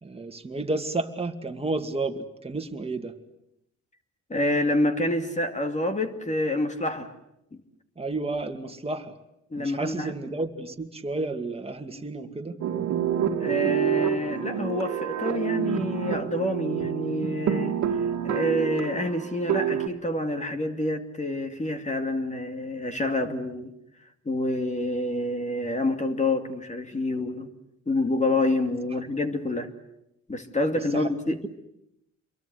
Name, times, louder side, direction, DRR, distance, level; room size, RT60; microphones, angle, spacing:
voice 1, 0.0-3.2 8.0-9.1 9.6-12.6 30.7-31.5, right 2 dB, 20° right, 2.4 m, -32 dB
voice 2, 4.3-7.1 9.5-10.1 13.4-23.7 24.2-27.5 27.9-29.7 30.3-31.4, left 1 dB, 25° left, 2.5 m, -27 dB
sound 1, 12.6-19.9, right 9 dB, 65° right, 2.1 m, -27 dB
27.5 x 23.0 x 7.9 m
cardioid pair, 90°, 30 cm